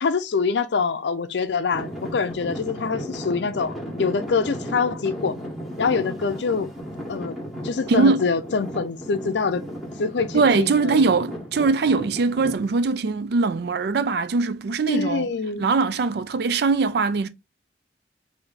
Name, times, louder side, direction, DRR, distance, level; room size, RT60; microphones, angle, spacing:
voice 1, 0.0-5.4 5.8-6.7 7.1-7.4 7.6-9.6 10.0-11.1 14.9-15.7, left 5 dB, 70° left, 0.5 m, -25 dB
Traffic noise roadway noise / Engine, 1.7-12.6, equal, ahead, 1.6 m, -35 dB
voice 2, 7.9-8.2 10.3-15.3 15.6-17.3, right 4 dB, 60° right, 0.4 m, -21 dB
3.4 x 2.7 x 3.9 m
head